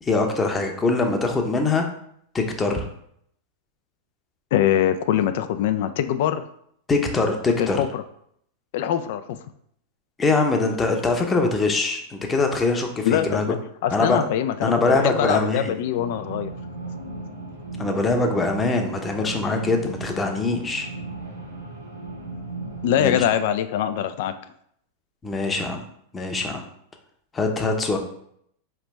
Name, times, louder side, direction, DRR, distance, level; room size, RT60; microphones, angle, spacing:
voice 1, 0.0-1.9 2.3-2.9 6.9-7.8 10.2-13.5 13.9-14.2 14.6-15.8 17.8-20.9 23.0-23.2 25.2-25.8 26.1-26.6 27.3-28.0, left 3 dB, 20° left, 3 dB, 0.8 m, -23 dB
voice 2, 4.5-6.4 7.6-8.0 8.7-9.4 13.0-13.6 13.8-16.5 22.8-24.3, left 10 dB, 60° left, 10 dB, 0.4 m, -23 dB
sound 1, 15.9-23.3, right 2 dB, 85° right, 1.4 m, -36 dB
4.9 x 3.3 x 3.2 m, 0.69 s
figure-of-eight pair, 95°, 0 cm